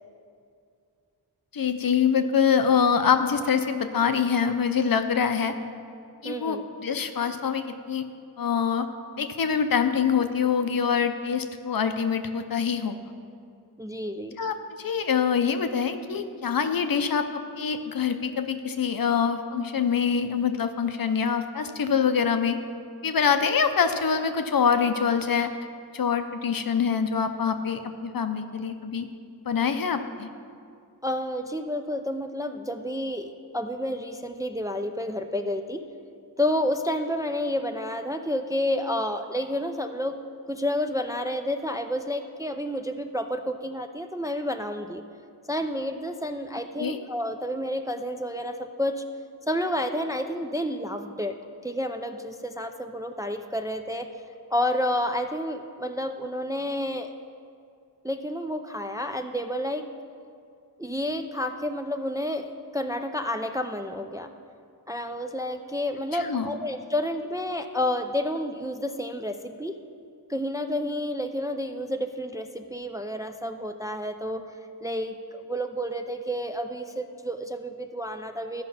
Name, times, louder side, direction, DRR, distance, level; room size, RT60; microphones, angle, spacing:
voice 1, 1.5-5.6 6.2-8.1 8.4-8.9 9.1-13.0 14.4-22.6 23.0-25.5 25.9-29.1 29.4-30.3 46.8-47.0 66.1-66.5, left 6 dB, 55° left, 8 dB, 0.7 m, -25 dB
voice 2, 6.2-6.6 13.8-14.4 31.0-35.8 36.4-40.2 40.5-45.0 45.5-49.0 49.5-51.3 51.6-54.1 54.5-57.1 58.0-59.9 60.8-64.3 64.9-69.8 70.3-74.5 74.8-78.6, left 1 dB, 10° right, 6 dB, 0.4 m, -30 dB
13.5 x 5.2 x 5.6 m, 2.4 s
wide cardioid pair, 80°, 41 cm